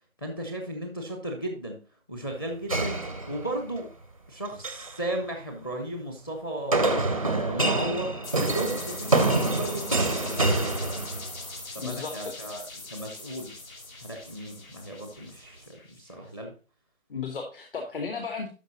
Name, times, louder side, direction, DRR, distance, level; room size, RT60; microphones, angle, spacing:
voice 1, 0.2-1.8 2.1-3.0 3.3-3.9 4.3-7.1 7.4-10.9 11.7-12.6 12.9-13.5 14.0-16.5, right 1 dB, 15° left, 4 dB, 0.7 m, -35 dB
sound 1, 2.7-3.8 4.5-4.9 6.7-11.5, right 2 dB, 25° right, 0.4 m, -26 dB
sound 2, 8.2-16.0, left 3 dB, 85° left, 2.4 m, -41 dB
voice 2, 11.8-12.3 17.1-18.5, left 5 dB, 40° left, 3 dB, 1.1 m, -34 dB
12.0 x 5.1 x 2.8 m, 0.35 s
figure-of-eight pair, 155°, 41 cm